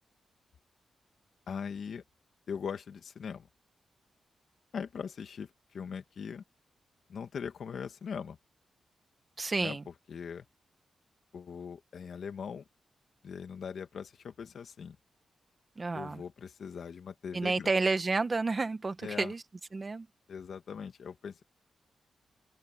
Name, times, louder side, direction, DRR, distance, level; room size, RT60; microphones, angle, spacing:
voice 1, 1.5-2.0 2.5-3.5 4.7-6.4 7.1-8.4 9.6-9.8 10.1-10.5 11.3-12.6 13.2-15.0 15.9-17.7 19.0-19.3 20.3-21.4, left 6 dB, 70° left, 2.2 m, -40 dB
voice 2, 9.4-9.8 15.8-16.2 17.3-19.4 19.7-20.1, right 3 dB, 35° right, 1.8 m, -30 dB
open air
cardioid pair, 75°, 0 cm